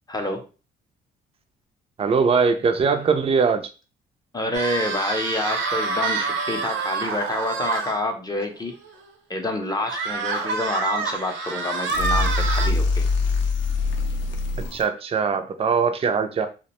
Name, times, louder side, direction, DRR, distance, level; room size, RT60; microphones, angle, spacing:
voice 1, 0.1-0.4 4.3-8.7 9.3-13.1, left 1 dB, 20° left, 4 dB, 0.6 m, -28 dB
voice 2, 2.0-3.6 14.7-16.5, right 5 dB, 30° right, 7 dB, 0.4 m, -21 dB
sound 1, 4.5-7.9 8.4-8.5 8.8-8.9 9.9-12.7, right 4 dB, 70° right, 0.7 m, -27 dB
sound 2, 11.9-14.8, left 3 dB, 70° left, 0.5 m, -23 dB
2.4 x 2.1 x 2.9 m, 0.33 s
cardioid pair, 90°, 20 cm